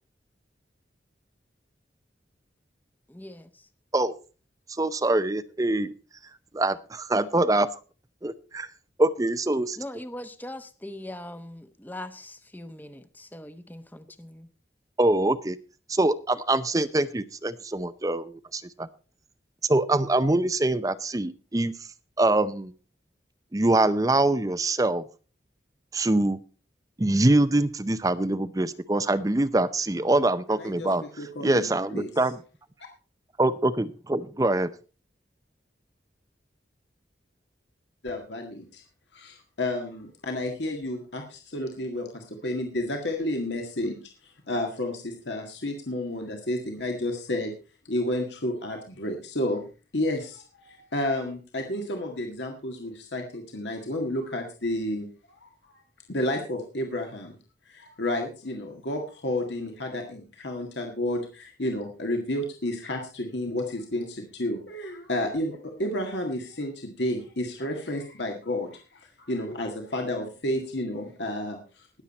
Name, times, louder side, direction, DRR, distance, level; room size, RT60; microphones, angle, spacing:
voice 1, 3.1-3.6 9.8-14.5, left 1 dB, 10° left, 0.9 m, -41 dB
voice 2, 4.8-5.9 6.5-7.7 8.2-8.7 9.0-9.8 15.0-15.6 15.9-18.9 19.6-21.7 22.2-22.7 23.5-25.0 25.9-26.4 27.0-32.4 33.4-34.7, right 2 dB, 20° right, 0.5 m, -24 dB
voice 3, 31.2-32.1 38.0-38.8 39.1-47.5 47.9-49.6 49.9-55.8 56.1-57.4 57.7-72.0, left 1 dB, 75° left, 1.8 m, -31 dB
20.0 x 7.3 x 4.2 m
head